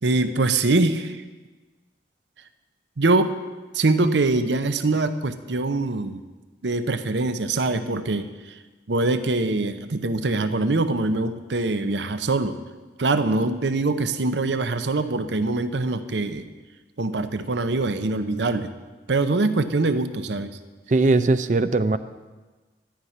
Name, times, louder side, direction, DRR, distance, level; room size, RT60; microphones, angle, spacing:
voice 1, 0.0-1.2 3.0-3.4 3.7-6.2 6.6-8.5 8.9-12.6 13.0-16.5 17.0-18.7 19.1-20.5, right 2 dB, 90° right, 10 dB, 0.7 m, -23 dB
voice 2, 20.9-22.0, right 3 dB, 45° right, 12 dB, 0.5 m, -19 dB
13.0 x 5.8 x 9.4 m, 1.3 s
head